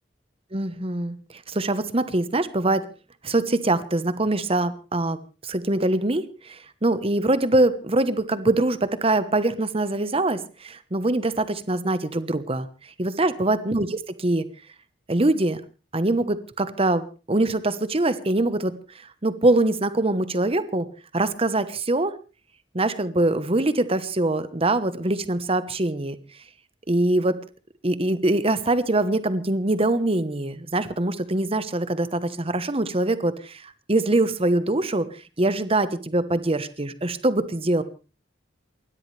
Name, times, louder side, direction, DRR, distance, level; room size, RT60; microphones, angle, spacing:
voice 1, 0.5-1.2 1.5-2.8 3.2-12.7 13.0-14.4 15.1-15.6 15.9-18.7 19.2-20.9 21.1-22.1 22.7-26.2 26.9-27.4 27.8-35.1 35.4-37.8, right 2 dB, 30° right, 13 dB, 1.1 m, -23 dB
28.5 x 13.0 x 3.4 m, 0.34 s
head